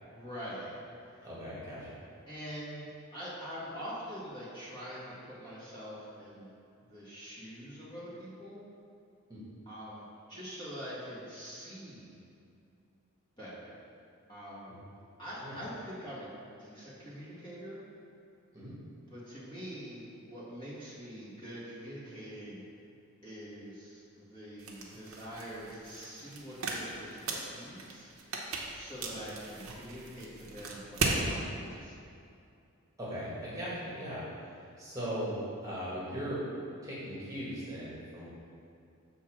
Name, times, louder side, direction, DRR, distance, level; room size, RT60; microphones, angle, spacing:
voice 1, 0.1-0.7 1.1-1.3 2.3-6.5 6.8-8.6 9.6-12.2 13.4-13.7 14.3-14.7 15.2-16.3 16.6-17.8 19.1-22.6 23.2-28.1 28.7-31.9, equal, 20° left, -9 dB, 1.6 m, -44 dB
voice 2, 1.2-1.8 9.3-9.4 14.7-14.8 15.4-15.6 18.5-18.7 33.0-34.2 34.5-36.5 36.8-38.3, equal, 15° right, -9 dB, 1.5 m, -38 dB
sound 1, 24.6-31.2, right 3 dB, 70° right, 0.9 m, -37 dB
7.0 x 3.8 x 6.0 m, 2.5 s
head